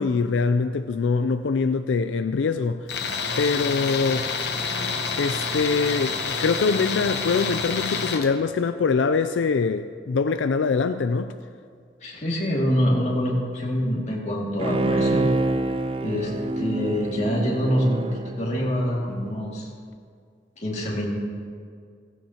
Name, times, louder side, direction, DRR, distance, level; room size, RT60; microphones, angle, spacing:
voice 1, 0.0-2.9 3.4-4.3 5.2-11.3, left 4 dB, 85° left, 10 dB, 0.4 m, -23 dB
Tools, 2.9-8.3, left 5 dB, 65° left, 1.0 m, -28 dB
voice 2, 12.0-15.3 16.0-16.3 16.6-19.7 20.6-21.1, equal, 40° left, -3 dB, 2.2 m, -25 dB
Bowed string instrument, 14.6-19.2 19.6-19.7, right 2 dB, 30° right, 0.4 m, -27 dB
16.0 x 15.5 x 2.9 m, 2.1 s
head